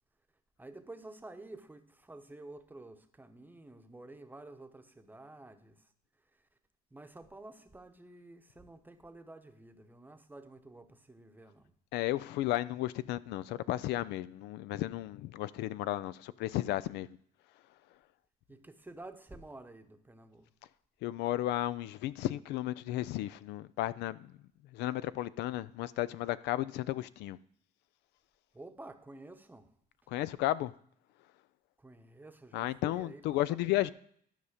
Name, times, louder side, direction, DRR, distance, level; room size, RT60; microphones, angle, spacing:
voice 1, 0.6-5.9 6.3-6.5 6.9-11.7 18.5-20.5 28.5-29.7 31.8-33.9, right 2 dB, 10° right, 0.9 m, -51 dB
voice 2, 11.9-17.1 21.0-24.3 24.7-27.4 30.1-30.7 32.5-33.9, left 15 dB, 85° left, 0.4 m, -33 dB
12.5 x 5.5 x 5.0 m
cardioid pair, 110°, 17 cm